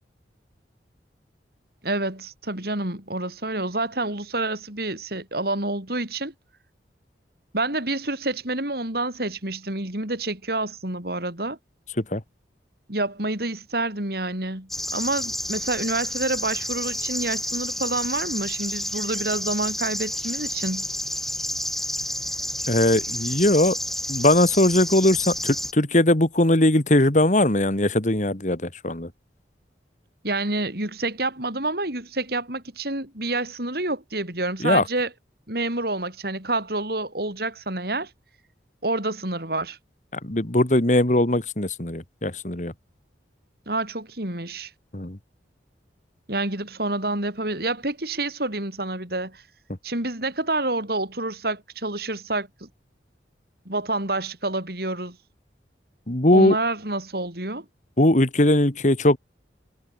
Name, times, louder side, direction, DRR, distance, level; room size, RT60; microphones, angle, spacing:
voice 1, 1.8-6.3 7.5-11.6 12.9-20.9 30.2-35.1 35.5-38.1 38.8-39.8 43.7-44.7 46.3-49.4 49.8-52.7 53.6-55.2 56.3-57.6, right 2 dB, 55° right, 5.0 m, -28 dB
sound 1, 14.7-25.7, equal, ahead, 5.9 m, -30 dB
voice 2, 22.7-23.8 24.1-29.1 34.6-34.8 40.2-42.7 44.9-45.2 56.1-56.6 58.0-59.2, left 1 dB, 40° left, 2.0 m, -20 dB
head